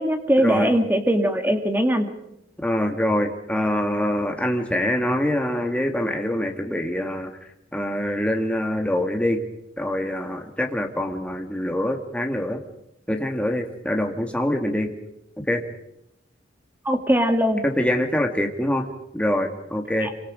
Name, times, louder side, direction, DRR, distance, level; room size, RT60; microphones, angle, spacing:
voice 1, 0.0-2.1 16.9-17.6 20.0-20.1, equal, 10° right, 6 dB, 2.1 m, -21 dB
voice 2, 2.6-7.3 7.7-9.4 9.8-12.6 13.1-14.9 15.5-15.6 17.6-18.9 19.1-20.1, left 1 dB, 5° left, 4 dB, 2.0 m, -24 dB
26.5 x 24.5 x 5.1 m, 0.83 s
head